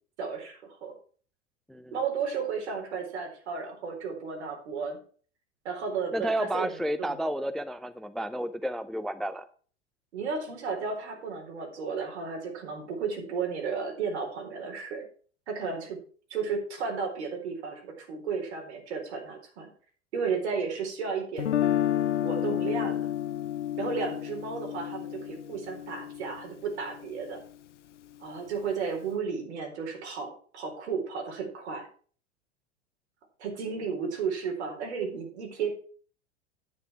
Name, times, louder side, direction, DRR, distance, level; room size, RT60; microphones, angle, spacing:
voice 1, 0.2-0.9 1.9-5.0 5.6-7.2 10.1-15.0 15.5-16.0 16.3-19.7 20.1-21.5 22.2-23.1 23.8-27.4 28.2-31.9 33.4-35.7, right 5 dB, 70° right, 2 dB, 4.2 m, -33 dB
voice 2, 6.1-9.4, right 1 dB, ahead, 12 dB, 0.4 m, -31 dB
Guitar, 21.4-27.4, left 11 dB, 85° left, 0.5 m, -31 dB
9.5 x 8.6 x 4.6 m, 0.44 s
hypercardioid pair, 90°, 35 cm